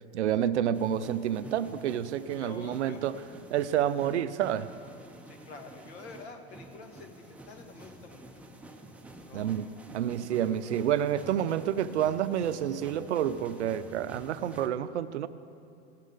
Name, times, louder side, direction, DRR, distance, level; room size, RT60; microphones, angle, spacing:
voice 1, 0.1-3.2 3.5-4.7 9.3-9.7 9.9-15.3, right 10 dB, 90° right, 14 dB, 0.5 m, -29 dB
sound 1, 0.7-14.7, right 1 dB, 5° right, 0.5 m, -49 dB
voice 2, 2.4-3.1 5.3-8.3 9.3-9.8, left 3 dB, 70° left, 5 dB, 1.4 m, -48 dB
16.5 x 6.4 x 3.8 m, 2.6 s
hypercardioid pair, 110°, 34 cm